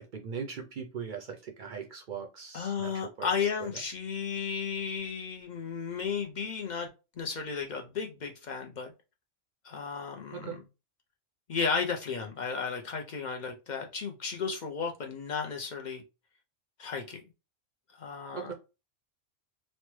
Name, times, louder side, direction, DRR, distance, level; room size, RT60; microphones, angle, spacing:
voice 1, 0.0-3.7 10.3-10.6 18.3-18.5, right 7 dB, 60° right, 3 dB, 0.5 m, -40 dB
voice 2, 2.5-6.9 7.2-8.9 9.6-10.6 11.5-16.0 16.8-17.2 18.0-18.5, left 5 dB, 70° left, 3 dB, 0.4 m, -34 dB
3.1 x 2.1 x 3.0 m, 0.29 s
omnidirectional pair, 1.3 m